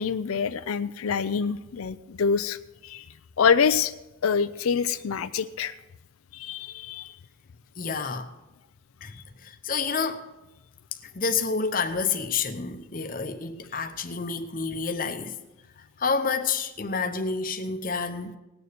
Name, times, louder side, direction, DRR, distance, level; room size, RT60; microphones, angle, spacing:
voice 1, 0.0-2.6 2.8-3.0 3.4-3.9 4.2-5.7 6.3-7.1, left 6 dB, 90° left, 0.5 m, -25 dB
voice 2, 7.8-8.3 9.0-9.1 9.4-10.3 11.1-15.4 16.0-18.4, left 5 dB, 40° left, 0.8 m, -29 dB
18.5 x 6.8 x 6.7 m
head